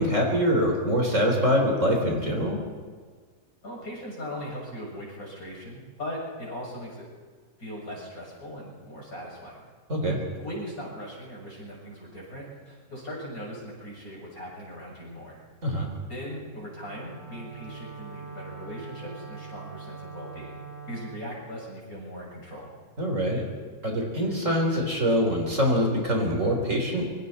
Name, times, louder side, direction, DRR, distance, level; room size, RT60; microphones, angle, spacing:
voice 1, 0.0-2.6 9.9-10.2 15.6-15.9 23.0-23.4 23.8-27.1, equal, 45° right, 1 dB, 4.0 m, -24 dB
voice 2, 3.6-7.1 7.6-9.7 10.4-15.4 16.1-22.7, equal, 50° left, -4 dB, 7.3 m, -39 dB
Wind instrument woodwind instrument, 16.7-21.2, right 5 dB, 80° left, 5.9 m, -43 dB
26.5 x 23.5 x 4.3 m, 1.6 s
omnidirectional pair, 1.9 m